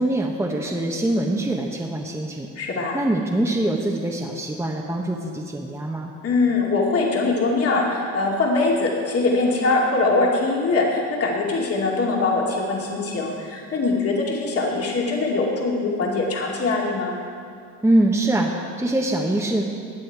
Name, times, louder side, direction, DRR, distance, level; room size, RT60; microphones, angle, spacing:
voice 1, 0.0-2.5 2.9-6.1 17.8-19.6, right 1 dB, 10° right, -1 dB, 1.1 m, -23 dB
voice 2, 2.6-3.0 6.2-17.1, left 3 dB, 50° left, -2 dB, 2.4 m, -22 dB
17.0 x 9.2 x 4.7 m, 2.3 s
cardioid pair, 105°, 31 cm